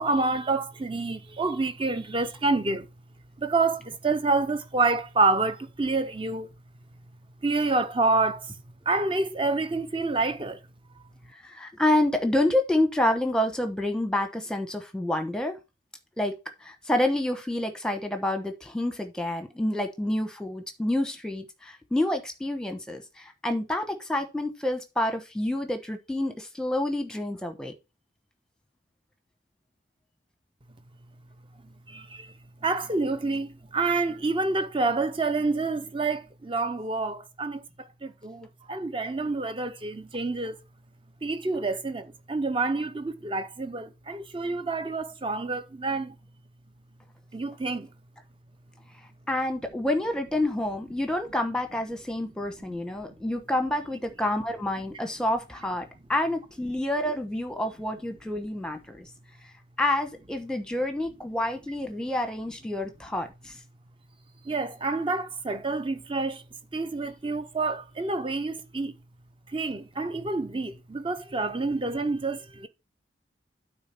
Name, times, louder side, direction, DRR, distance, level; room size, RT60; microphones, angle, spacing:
voice 1, 0.0-2.9 3.4-6.5 7.4-8.6 8.9-10.6 31.9-32.3 32.6-40.6 41.2-46.2 47.3-47.9 64.4-66.4 66.7-69.0 69.5-72.7, right 3 dB, 25° right, 0.6 m, -28 dB
voice 2, 11.4-15.6 16.2-27.7 49.3-59.1 59.8-63.5, left 1 dB, 5° left, 1.0 m, -28 dB
8.9 x 3.6 x 5.8 m
head